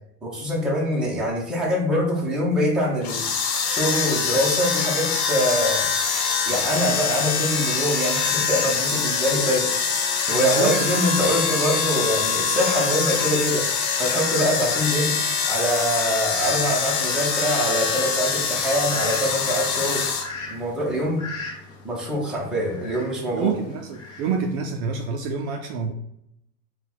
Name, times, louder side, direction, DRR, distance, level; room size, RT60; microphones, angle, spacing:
voice 1, 0.2-3.3 3.7-5.9 6.5-9.7 10.3-13.7 14.0-15.2 15.5-20.1 20.5-21.2 21.8-23.5, equal, ahead, -5 dB, 0.7 m, -24 dB
sound 1, 3.0-20.2, left 6 dB, 65° left, 1.1 m, -24 dB
voice 2, 10.3-11.1 23.3-25.9, right 5 dB, 45° right, 3 dB, 0.5 m, -27 dB
Fowl, 17.5-24.6, left 3 dB, 30° left, 0.9 m, -40 dB
3.8 x 2.3 x 4.3 m, 0.77 s
supercardioid pair, 145°, 48 cm